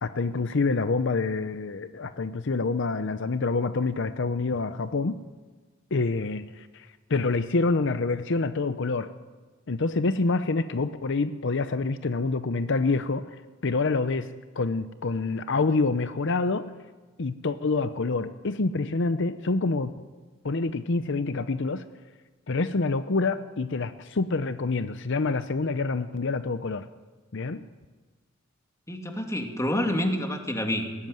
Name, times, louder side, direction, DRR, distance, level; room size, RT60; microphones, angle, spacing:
voice 1, 0.0-5.2 5.9-9.1 9.7-13.3 13.6-16.7 17.2-20.1 20.4-21.9 22.5-26.9 27.3-27.6, left 3 dB, 60° left, 11 dB, 0.7 m, -27 dB
voice 2, 28.9-31.1, left 1 dB, 15° left, 3 dB, 2.6 m, -28 dB
20.5 x 17.5 x 9.3 m, 1.3 s
head